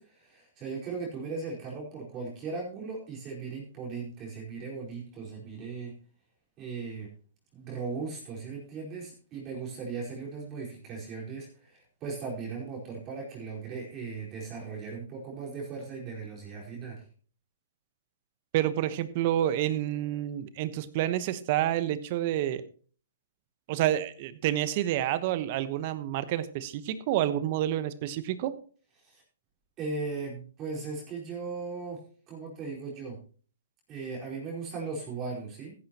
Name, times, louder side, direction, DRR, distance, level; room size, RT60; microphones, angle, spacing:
voice 1, 0.0-5.9 6.6-7.1 7.5-17.0 29.0-29.2 29.8-33.2 33.9-35.7, right 4 dB, 25° right, -3 dB, 4.6 m, -38 dB
voice 2, 18.5-22.6 23.7-28.5, right 12 dB, 40° right, 14 dB, 1.1 m, -29 dB
15.0 x 10.5 x 3.0 m, 0.41 s
hypercardioid pair, 145°, 0 cm